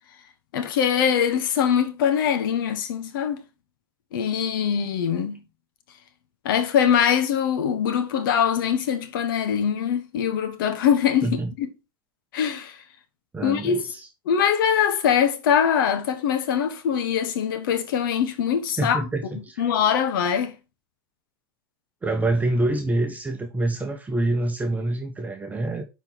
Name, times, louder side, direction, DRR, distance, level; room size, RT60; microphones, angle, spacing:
voice 1, 0.5-3.4 4.1-5.4 6.4-11.7 12.3-12.8 13.4-13.8 14.2-19.1 19.6-20.5, left 8 dB, 60° left, 1.4 m, -23 dB
voice 2, 13.3-14.1 18.8-19.6 22.0-25.8, right 2 dB, 10° right, 1.2 m, -26 dB
10.0 x 4.3 x 4.0 m
figure-of-eight pair, 90°, 12 cm